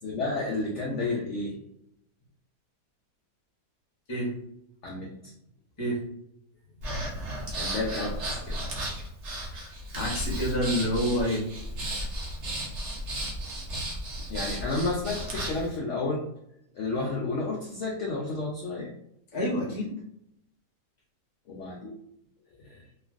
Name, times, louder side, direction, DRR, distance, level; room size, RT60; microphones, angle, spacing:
voice 1, 0.0-1.6 4.8-5.3 7.6-8.6 14.3-16.2 16.7-18.9 21.5-21.9 22.6-22.7, left 3 dB, 80° left, -2 dB, 0.6 m, -31 dB
Breathing, 6.8-15.7, right 1 dB, 55° right, 0.8 m, -34 dB
voice 2, 9.5-11.4 19.3-19.9, equal, 30° left, -4 dB, 0.5 m, -28 dB
3.0 x 2.5 x 2.4 m, 0.76 s
omnidirectional pair, 1.8 m